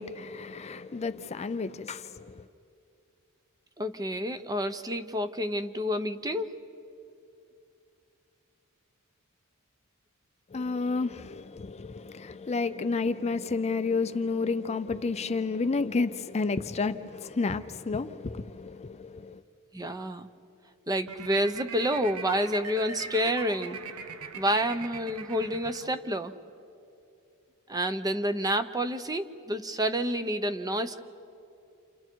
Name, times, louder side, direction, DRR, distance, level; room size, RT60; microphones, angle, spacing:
voice 1, 0.0-2.5 10.5-19.4, left 4 dB, 30° left, 0.5 m, -31 dB
voice 2, 3.8-6.5 19.7-20.3 20.9-23.8 24.4-26.3 27.7-31.0, equal, 15° right, 0.8 m, -29 dB
sound 1, 21.0-26.3, right 5 dB, 80° right, 0.9 m, -41 dB
29.5 x 28.5 x 4.6 m
head